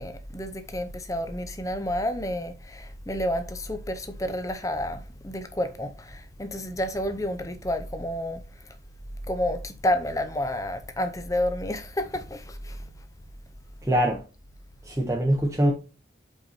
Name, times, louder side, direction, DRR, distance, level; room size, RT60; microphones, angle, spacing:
voice 1, 0.0-8.4 9.3-12.8, left 1 dB, 15° left, 0.7 m, -30 dB
voice 2, 13.8-14.2 14.8-15.7, right 1 dB, 15° right, 0.9 m, -23 dB
5.6 x 4.5 x 4.2 m
head